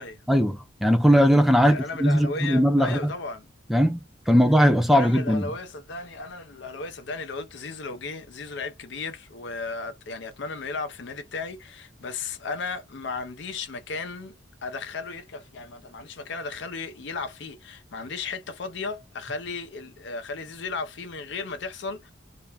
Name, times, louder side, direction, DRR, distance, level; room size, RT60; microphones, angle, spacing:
voice 1, 0.3-3.1 3.7-4.0 4.3-5.5, equal, ahead, 0.4 m, -19 dB
voice 2, 1.6-3.5 4.9-14.4 14.6-22.1, left 4 dB, 60° left, 0.5 m, -35 dB
2.5 x 2.1 x 3.2 m
head